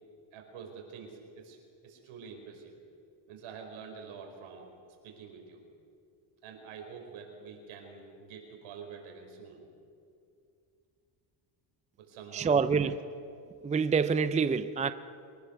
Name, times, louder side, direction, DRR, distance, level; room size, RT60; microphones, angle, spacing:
voice 1, 0.3-1.6 1.8-2.7 3.3-4.7 5.0-5.6 6.4-9.6 12.0-13.0, right 6 dB, 85° right, 2 dB, 5.0 m, -47 dB
voice 2, 12.3-13.0 13.6-14.9, right 5 dB, 15° right, 12 dB, 0.5 m, -26 dB
24.5 x 19.0 x 6.9 m, 2.5 s
cardioid pair, 115°, 48 cm